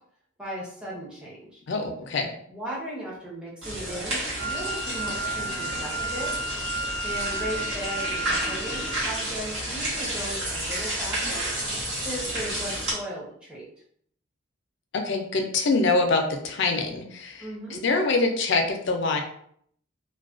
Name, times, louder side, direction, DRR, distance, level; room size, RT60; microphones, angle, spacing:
voice 1, 0.4-1.6 2.5-6.3 7.0-11.5 12.0-13.7 17.4-17.8, equal, 5° right, -6 dB, 0.7 m, -37 dB
voice 2, 1.7-2.3 14.9-19.2, left 3 dB, 60° left, 3 dB, 0.4 m, -25 dB
sound 1, 3.6-12.9, right 1 dB, 65° right, 1.1 m, -31 dB
Wind instrument woodwind instrument, 4.3-9.2, right 1 dB, 40° right, 0.5 m, -32 dB
2.3 x 2.2 x 2.4 m, 0.65 s
head